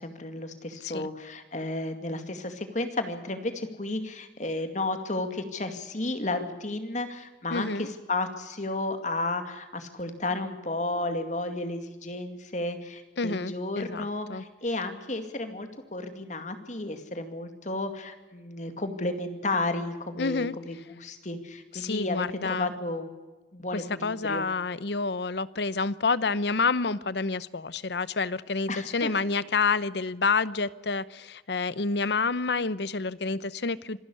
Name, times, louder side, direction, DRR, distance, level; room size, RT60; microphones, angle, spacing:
voice 1, 0.0-23.1 23.5-24.5 28.7-29.1, left 2 dB, 40° left, 7 dB, 2.3 m, -33 dB
voice 2, 7.5-7.9 13.2-14.4 20.2-20.5 21.7-22.7 23.7-34.0, left 4 dB, 65° left, 18 dB, 0.8 m, -28 dB
26.0 x 12.0 x 9.9 m, 1.2 s
head